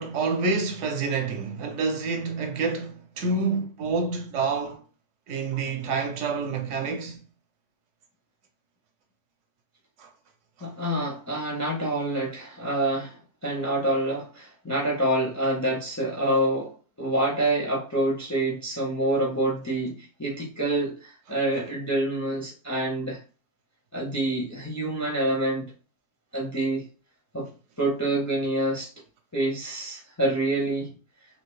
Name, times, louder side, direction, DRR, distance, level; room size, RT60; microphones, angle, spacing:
voice 1, 0.0-4.8 5.3-7.2 10.0-10.1, right 4 dB, 75° right, 0.9 m, -28 dB
voice 2, 10.6-13.2 13.4-16.7 17.0-23.2 23.9-25.7 26.3-26.8 27.3-27.5 27.8-28.9 29.3-30.9, right 1 dB, 25° left, 0.4 m, -27 dB
2.9 x 2.6 x 3.1 m
omnidirectional pair, 1.3 m